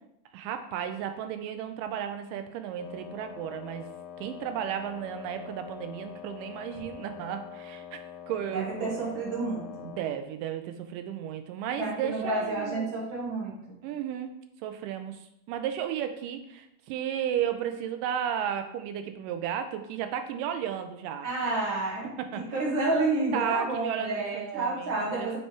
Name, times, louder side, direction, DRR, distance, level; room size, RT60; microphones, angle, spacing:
voice 1, 0.3-3.9 4.2-8.0 8.3-8.9 9.8-12.9 13.8-14.3 14.6-21.3 22.2-22.5 23.3-25.4, right 9 dB, 80° right, 8 dB, 2.1 m, -34 dB
Wind instrument woodwind instrument, 2.8-10.2, left 9 dB, 85° left, 2.3 m, -44 dB
voice 2, 8.5-9.9 11.8-13.8 21.2-22.1 22.5-25.4, right 2 dB, 60° right, -4 dB, 1.3 m, -30 dB
7.2 x 3.3 x 4.5 m, 0.81 s
omnidirectional pair, 4.0 m